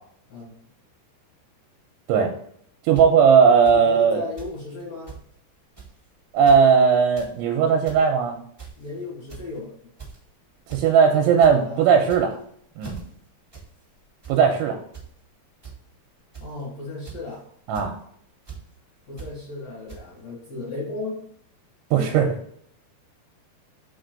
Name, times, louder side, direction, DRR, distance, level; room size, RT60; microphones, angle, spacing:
voice 1, 2.8-4.2 6.3-8.4 10.7-12.4 12.8-13.0 14.3-14.8 17.7-17.9 21.9-22.4, right 6 dB, 80° right, 3 dB, 2.9 m, -17 dB
sound 1, 2.9-3.0 3.6-3.8 4.4-4.5 4.8-4.9 5.1-5.2 5.7-6.0 6.3-6.6 7.0-7.3 7.7-8.0 8.6-8.9 9.3-9.6 10.0-10.2 10.7-10.8 11.2-11.5 12.0-12.4 12.8-13.0 13.5-13.7 14.0-14.3 14.9-15.1 15.6-15.7 16.3-16.6 17.0-17.3 17.7-17.9 18.4-18.6 19.2-19.3 19.9-20.0, right 6 dB, 40° right, 0.3 m, -40 dB
voice 2, 3.7-5.2 8.8-9.7 11.6-11.9 16.4-17.4 19.1-21.3, left 2 dB, 50° left, -5 dB, 2.1 m, -35 dB
6.4 x 5.4 x 3.9 m, 0.66 s
omnidirectional pair, 5.9 m